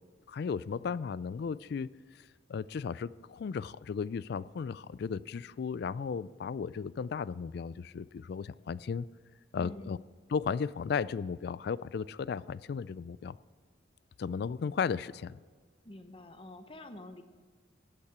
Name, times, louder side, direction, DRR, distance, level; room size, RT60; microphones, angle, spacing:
voice 1, 0.3-1.9 2.5-9.0 9.5-10.0 10.3-13.4 14.2-15.4, left 6 dB, 55° left, 19 dB, 0.3 m, -35 dB
voice 2, 9.6-10.0 15.8-17.2, left 1 dB, 25° left, 8 dB, 0.8 m, -47 dB
15.0 x 8.6 x 6.0 m, 1.5 s
head